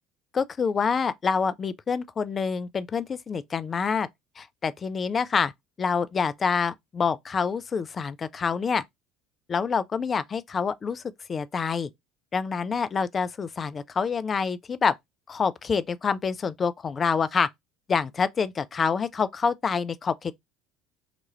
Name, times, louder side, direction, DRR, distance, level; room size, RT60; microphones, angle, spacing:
voice 1, 0.3-4.1 4.4-5.5 5.8-8.8 9.5-11.0 11.3-11.9 12.3-14.9 15.3-17.5 17.9-20.3, left 5 dB, 30° left, 0.3 m, -27 dB
2.9 x 2.3 x 3.0 m
figure-of-eight pair, 65°, 0 cm